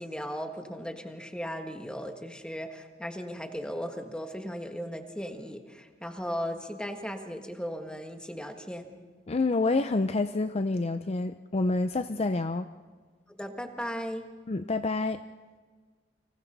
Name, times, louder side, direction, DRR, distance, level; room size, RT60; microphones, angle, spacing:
voice 1, 0.0-8.9 13.3-14.3, equal, 5° left, 5 dB, 1.7 m, -37 dB
voice 2, 9.3-12.7 14.5-15.2, left 3 dB, 35° left, 10 dB, 0.5 m, -28 dB
30.0 x 25.0 x 4.1 m, 1.5 s
head